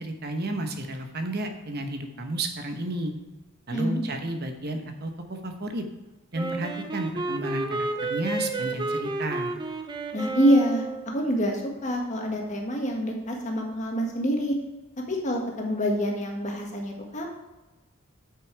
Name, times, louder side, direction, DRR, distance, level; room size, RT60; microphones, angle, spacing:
voice 1, 0.0-3.1 3.7-5.1 5.4-5.8 6.3-9.5, right 2 dB, 50° right, 5 dB, 1.0 m, -32 dB
voice 2, 3.7-4.0 10.1-14.6 15.1-17.3, equal, 35° left, 1 dB, 1.7 m, -26 dB
Wind instrument woodwind instrument, 6.3-11.1, right 2 dB, 20° right, 0.8 m, -31 dB
8.6 x 6.2 x 4.6 m, 1.1 s
head